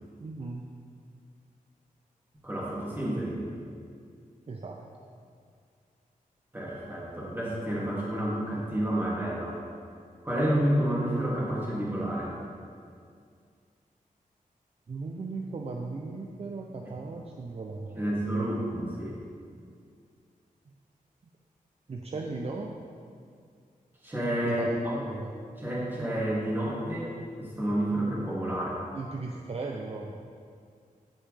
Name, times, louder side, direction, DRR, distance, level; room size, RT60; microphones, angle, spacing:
voice 1, 0.2-0.7 4.5-4.8 14.9-18.5 21.9-22.7 24.4-25.4 28.9-30.1, right 3 dB, 45° right, 0 dB, 0.6 m, -37 dB
voice 2, 2.4-3.4 6.5-9.6 10.2-12.3 17.9-19.2 24.0-24.9 25.6-27.1 27.4-28.8, right 1 dB, 15° right, -7 dB, 2.6 m, -29 dB
16.0 x 5.4 x 3.4 m, 2.3 s
wide cardioid pair, 125°, 15 cm